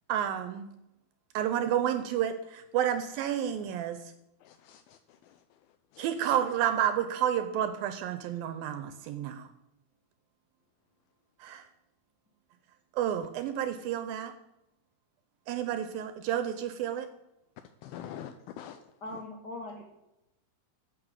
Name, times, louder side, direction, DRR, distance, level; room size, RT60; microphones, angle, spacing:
voice 1, 0.1-0.7 1.3-4.1 6.0-9.5 11.4-11.7 12.9-14.3 15.5-17.1, right 10 dB, 75° right, 9 dB, 2.3 m, -30 dB
voice 2, 4.4-5.4 5.9-6.1 17.8-18.8 19.1-19.2, left 10 dB, 80° left, 8 dB, 2.4 m, -45 dB
voice 3, 19.0-19.8, left 2 dB, 60° left, 0 dB, 1.0 m, -40 dB
11.0 x 6.6 x 8.0 m, 0.90 s
omnidirectional pair, 4.5 m